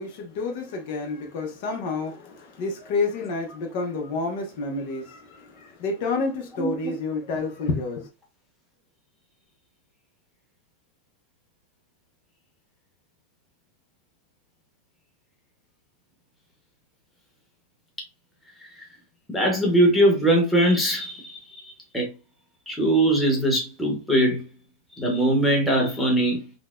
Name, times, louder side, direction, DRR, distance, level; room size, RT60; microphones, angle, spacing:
voice 1, 0.0-8.1, left 3 dB, 55° left, 0.9 m, -29 dB
voice 2, 6.6-6.9 19.3-21.6 21.9-22.1 22.7-24.4 25.0-26.4, right 1 dB, 5° left, 1.1 m, -21 dB
3.9 x 2.2 x 2.5 m
supercardioid pair, 145°, 0 cm